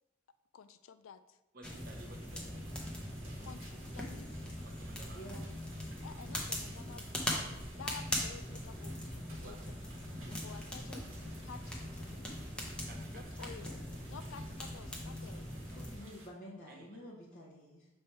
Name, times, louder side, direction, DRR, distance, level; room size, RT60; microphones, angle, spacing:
voice 1, 0.5-1.2 3.4-4.4 6.0-9.6 10.3-12.3 13.1-15.5, left 5 dB, 80° left, 12 dB, 0.4 m, -52 dB
voice 2, 1.5-2.9 4.6-5.2 9.4-9.6 10.2-10.4 12.9-13.3 16.0-16.1 16.7-17.0, right 2 dB, 45° right, 2 dB, 0.9 m, -54 dB
sound 1, 1.6-16.0, left 1 dB, 5° left, 0.8 m, -41 dB
sound 2, 1.6-16.3, right 2 dB, 75° right, 1.4 m, -57 dB
voice 3, 5.1-5.5 15.7-17.9, equal, 45° left, -7 dB, 0.9 m, -50 dB
7.0 x 3.3 x 4.3 m, 0.96 s
head